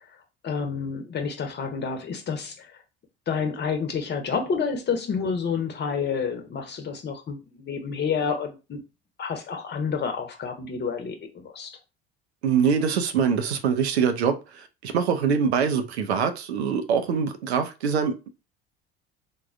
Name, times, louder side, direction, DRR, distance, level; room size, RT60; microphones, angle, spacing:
voice 1, 0.4-2.8 3.3-8.8 9.2-11.8, left 6 dB, 35° left, 0.9 m, -29 dB
voice 2, 12.4-18.3, right 6 dB, 80° right, 0.5 m, -24 dB
3.5 x 2.3 x 2.5 m
figure-of-eight pair, 60°, 32 cm